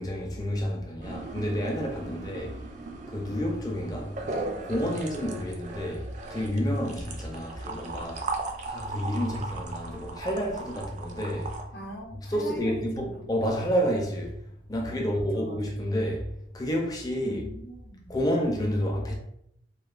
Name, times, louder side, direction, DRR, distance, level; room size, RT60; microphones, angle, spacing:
voice 1, 0.0-2.5 3.1-4.2 4.6-11.6 12.3-14.4 14.7-17.4 18.1-19.2, equal, 20° left, 0.4 m, -30 dB
sound 1, 1.0-11.6, right 3 dB, 45° right, 0.3 m, -38 dB
voice 2, 11.7-13.1 14.8-15.6 17.2-18.1, equal, 70° left, 0.6 m, -43 dB
2.8 x 2.1 x 2.3 m
head